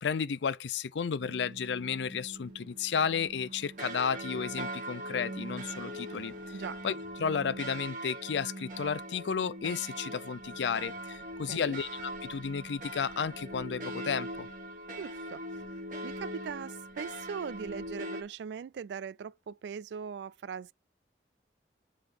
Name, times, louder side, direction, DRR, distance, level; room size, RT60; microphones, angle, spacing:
voice 1, 0.0-6.6 6.8-14.5, left 6 dB, 85° left, 0.5 m, -33 dB
sound 1, 1.2-18.2, right 1 dB, 45° right, 1.4 m, -41 dB
sound 2, 6.1-7.9 8.3-8.4 8.7-9.2 9.6-11.7, equal, 10° right, 2.9 m, -66 dB
voice 2, 15.0-15.6 16.0-20.7, right 7 dB, 75° right, 0.3 m, -40 dB
7.6 x 3.7 x 4.8 m
head